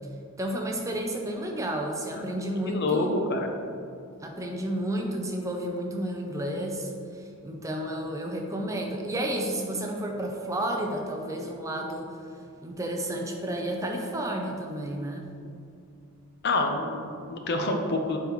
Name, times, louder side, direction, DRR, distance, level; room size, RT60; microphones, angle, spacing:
voice 1, 0.4-3.2 4.2-12.2 12.6-15.3, right 1 dB, 15° right, 1 dB, 0.4 m, -31 dB
voice 2, 2.7-3.5 16.4-18.2, left 2 dB, 50° left, 3 dB, 0.6 m, -27 dB
9.2 x 3.5 x 3.0 m, 2.5 s
head